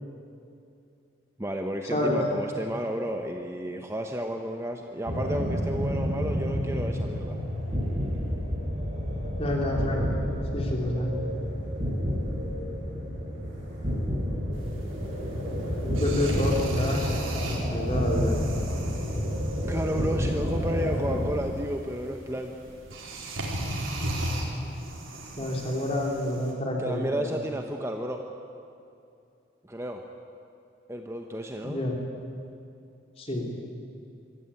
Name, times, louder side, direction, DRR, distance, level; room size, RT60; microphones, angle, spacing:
voice 1, 1.4-7.4 19.6-22.5 26.8-28.2 29.7-30.0 30.9-31.8, equal, 15° right, 4 dB, 0.9 m, -32 dB
sound 1, 5.1-21.3, equal, 35° right, 6.8 m, -29 dB
voice 2, 9.4-10.1 10.5-11.1 15.8-17.1 17.6-18.4 23.9-24.2 25.4-27.3 31.6-32.0 33.2-33.5, left 1 dB, 30° left, 0 dB, 3.4 m, -28 dB
sound 2, 14.5-26.5, right 1 dB, 90° right, 4.2 m, -37 dB
24.5 x 14.0 x 9.0 m, 2.6 s
head